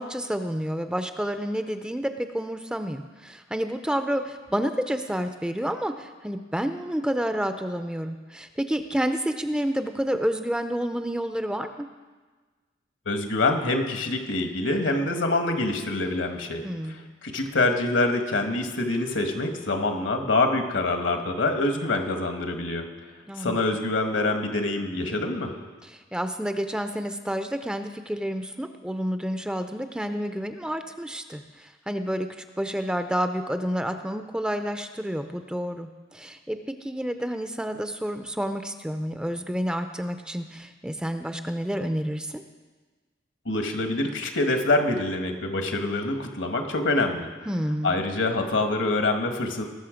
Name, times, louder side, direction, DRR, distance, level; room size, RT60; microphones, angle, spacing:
voice 1, 0.0-11.9 16.6-17.1 23.3-23.6 25.8-42.4 47.5-48.0, equal, 5° right, 8 dB, 0.4 m, -29 dB
voice 2, 13.0-16.6 16.9-22.8 23.4-25.5 43.4-47.3 47.8-49.6, left 2 dB, 75° left, 5 dB, 1.4 m, -25 dB
19.5 x 6.5 x 5.0 m, 1.3 s
head